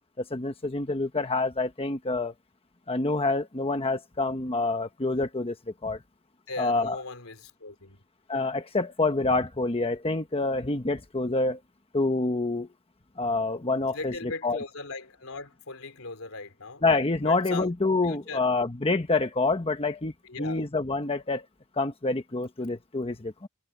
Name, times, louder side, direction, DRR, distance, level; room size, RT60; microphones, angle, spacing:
voice 1, 0.3-2.3 2.9-5.5 5.8-6.0 6.6-7.0 8.3-11.6 11.9-12.7 13.2-14.6 16.8-21.5 21.8-23.5, left 3 dB, 25° left, 1.2 m, -27 dB
voice 2, 6.5-8.0 13.9-16.8 17.2-17.7 18.0-18.4 20.2-20.7, left 3 dB, 80° left, 3.4 m, -39 dB
head